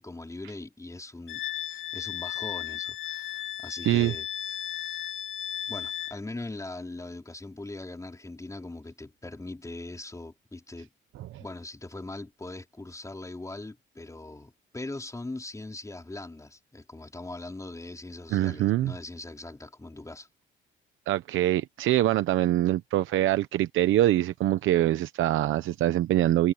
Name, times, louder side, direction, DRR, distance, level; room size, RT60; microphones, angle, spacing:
voice 1, 0.0-5.2 5.7-10.9 11.4-20.3, left 2 dB, 15° left, 4.7 m, -41 dB
Wind instrument woodwind instrument, 1.3-6.2, left 11 dB, 80° left, 1.2 m, -35 dB
voice 2, 18.3-18.9 21.1-26.5, right 14 dB, 80° right, 0.9 m, -24 dB
cardioid pair, 90°, 20 cm